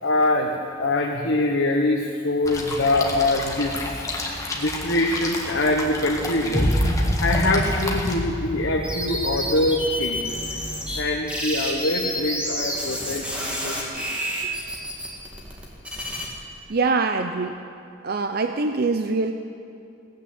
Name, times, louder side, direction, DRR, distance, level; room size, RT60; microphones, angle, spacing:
voice 1, 0.0-4.0 4.5-6.9 7.2-10.3 10.9-14.0, left 2 dB, 80° left, -1 dB, 1.3 m, -24 dB
sound 1, 2.4-8.2, left 2 dB, 15° left, 1.6 m, -31 dB
sound 2, 6.5-12.5, equal, 25° right, 4.4 m, -27 dB
sound 3, 8.8-11.0 11.3-16.3, left 1 dB, 5° right, 2.3 m, -29 dB
voice 2, 16.7-17.5 18.0-19.3, right 3 dB, 50° right, 7 dB, 0.6 m, -23 dB
16.5 x 9.2 x 7.9 m, 2.7 s
head